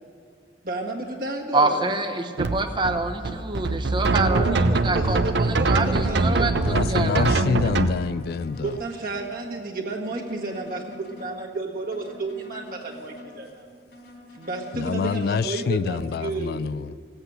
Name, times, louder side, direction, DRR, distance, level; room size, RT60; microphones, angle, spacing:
voice 1, 0.6-1.9 4.1-6.6 8.6-13.7 14.3-16.8, right 2 dB, 55° right, 1.7 m, -32 dB
voice 2, 1.5-7.3 7.6-7.7, right 2 dB, 25° right, 0.9 m, -26 dB
sound 1, 2.4-7.9, right 3 dB, 80° right, 0.6 m, -23 dB
sound 2, 4.6-5.4 5.9-7.4 7.9-9.4 9.9-11.4 11.9-13.4 13.9-14.8, left 1 dB, 75° left, 4.1 m, -46 dB
voice 3, 6.6-8.7 14.7-16.9, left 5 dB, 60° left, 0.3 m, -26 dB
16.5 x 8.0 x 8.0 m
head